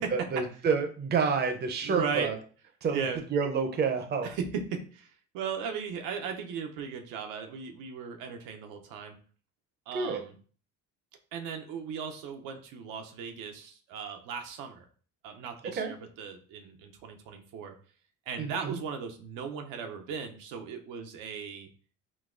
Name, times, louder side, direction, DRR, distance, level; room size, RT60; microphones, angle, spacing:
voice 1, 0.1-2.4 2.8-3.0 3.3-4.3 9.9-10.2 15.6-15.9 18.4-18.8, right 5 dB, 30° right, 5 dB, 0.6 m, -29 dB
voice 2, 1.8-2.3 2.9-3.2 4.2-9.2 9.9-10.3 11.3-14.8 15.2-17.7 18.3-21.7, right 6 dB, 80° right, 4 dB, 0.6 m, -37 dB
3.9 x 2.3 x 2.4 m, 0.42 s
supercardioid pair, 90°, 33 cm